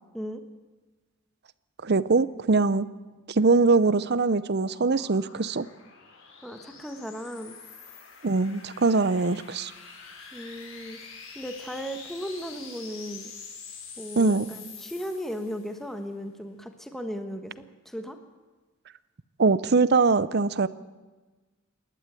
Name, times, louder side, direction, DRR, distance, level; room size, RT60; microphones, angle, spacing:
voice 1, 1.8-2.9 3.3-5.7 8.2-9.7 14.2-14.5 19.4-20.7, right 3 dB, 50° right, 16 dB, 0.7 m, -22 dB
sound 1, 3.2-15.8, left 5 dB, 65° left, 5.3 m, -46 dB
voice 2, 6.4-7.5 10.3-11.0 11.3-13.3 14.0-18.2, equal, ahead, 6 dB, 1.3 m, -36 dB
28.5 x 11.5 x 9.1 m, 1.3 s
head